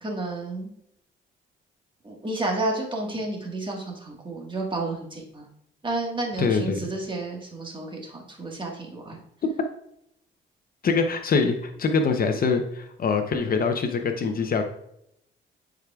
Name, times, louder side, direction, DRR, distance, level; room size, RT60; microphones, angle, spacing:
voice 1, 0.0-0.7 2.0-5.5 5.8-9.2, right 2 dB, 25° right, 0 dB, 1.6 m, -31 dB
voice 2, 6.4-6.8 10.8-14.6, left 4 dB, 45° left, 6 dB, 0.7 m, -24 dB
10.0 x 4.8 x 2.4 m, 0.76 s
cardioid pair, 90°, 20 cm